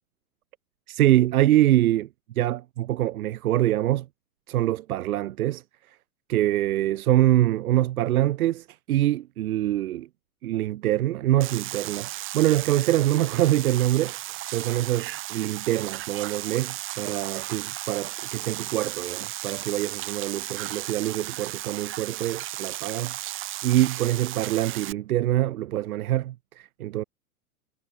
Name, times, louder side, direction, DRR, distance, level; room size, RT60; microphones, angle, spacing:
voice 1, 0.9-2.1 2.3-4.1 4.5-5.6 6.3-10.1 10.4-14.2 14.5-23.1 23.6-27.0, right 14 dB, 75° right, 1.6 m, -24 dB
sound 1, 11.4-24.9, right 15 dB, 30° right, 0.9 m, -35 dB
hypercardioid pair, 120°, 44 cm